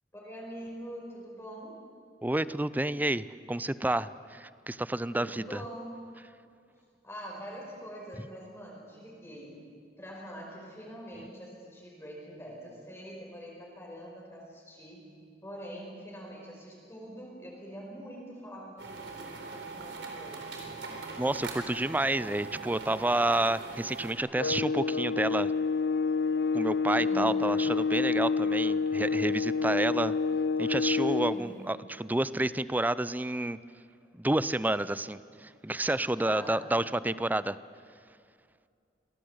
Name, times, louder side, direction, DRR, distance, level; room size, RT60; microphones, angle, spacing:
voice 1, 0.1-1.8 5.1-5.9 7.0-9.6 10.0-15.1 15.4-20.5 26.9-27.4 31.3-31.7 36.1-36.7, equal, 15° left, -2 dB, 4.9 m, -44 dB
voice 2, 2.2-5.6 21.2-25.5 26.5-30.2 30.6-33.6 34.2-37.6, right 1 dB, 10° right, 17 dB, 0.5 m, -29 dB
sound 1, 18.8-24.1, right 4 dB, 80° right, 3.9 m, -41 dB
sound 2, 24.4-31.4, left 4 dB, 70° left, 0.7 m, -28 dB
25.5 x 18.0 x 8.1 m, 2.3 s
head